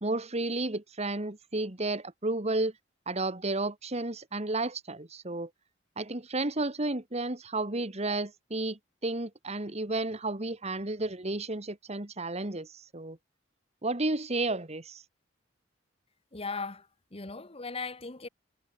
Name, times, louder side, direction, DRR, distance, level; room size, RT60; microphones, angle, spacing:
voice 1, 0.0-2.7 3.1-5.5 6.0-13.2 13.8-15.0, right 2 dB, 35° right, 1.9 m, -32 dB
voice 2, 16.3-18.3, left 4 dB, 30° left, 1.5 m, -38 dB
head